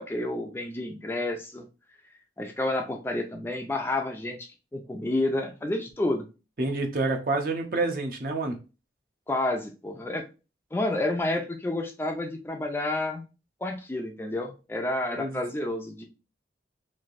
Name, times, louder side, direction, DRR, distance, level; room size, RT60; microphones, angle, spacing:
voice 1, 0.0-1.6 2.4-6.3 9.3-10.3 10.7-13.2 13.6-16.0, left 2 dB, 15° left, 3 dB, 0.3 m, -30 dB
voice 2, 6.6-8.5 15.1-15.4, right 2 dB, 50° right, 4 dB, 0.6 m, -28 dB
3.2 x 2.6 x 2.5 m, 0.30 s
head